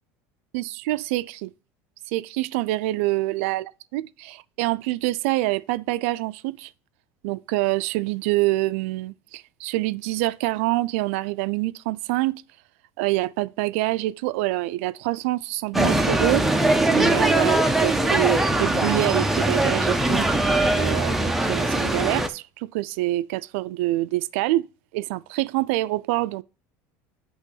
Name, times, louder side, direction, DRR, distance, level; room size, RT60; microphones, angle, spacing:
voice 1, 0.5-1.5 2.1-6.7 7.2-12.4 13.0-16.5 16.9-20.3 20.8-24.7 24.9-26.4, right 18 dB, 75° right, 0.3 m, -26 dB
sound 1, 15.7-22.3, right 2 dB, 5° right, 0.4 m, -21 dB
8.2 x 3.0 x 6.2 m
cardioid pair, 175°, 7 cm